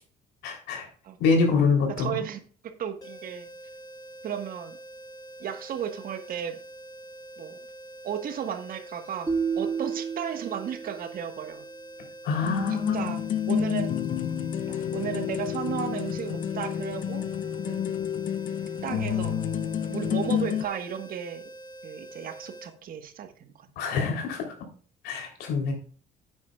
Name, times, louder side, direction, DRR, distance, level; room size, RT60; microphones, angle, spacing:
voice 1, 0.4-0.9 1.2-2.2 12.2-13.1 23.8-24.6 25.0-25.7, left 4 dB, 85° left, 3 dB, 3.5 m, -25 dB
voice 2, 1.9-3.5 4.2-4.8 5.4-6.6 7.4-7.6 8.0-9.3 9.6-11.6 12.7-13.9 14.7-17.3 17.7-17.9 18.8-19.4 19.9-21.4 21.8-23.7, right 9 dB, 60° right, 8 dB, 1.4 m, -34 dB
sound 1, 3.0-22.7, right 1 dB, 25° left, 2.8 m, -45 dB
sound 2, 9.3-11.4, right 6 dB, 20° right, 1.8 m, -31 dB
sound 3, 12.4-20.7, left 10 dB, 50° left, 0.7 m, -29 dB
10.0 x 8.9 x 2.4 m, 0.42 s
cardioid pair, 110°, 17 cm